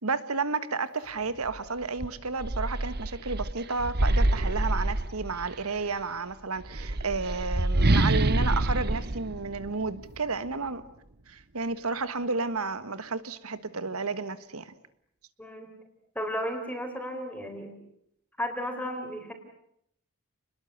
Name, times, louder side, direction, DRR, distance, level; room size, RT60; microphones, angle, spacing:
voice 1, 0.0-10.8 11.3-14.7, right 4 dB, 80° right, 13 dB, 1.5 m, -32 dB
sound 1, 1.4-1.6 2.0-5.6 6.6-10.2, right 1 dB, 50° right, 1.1 m, -27 dB
voice 2, 15.4-15.7 16.1-17.7 18.4-19.3, equal, 5° left, 5 dB, 4.0 m, -34 dB
29.5 x 21.5 x 8.1 m, 0.74 s
head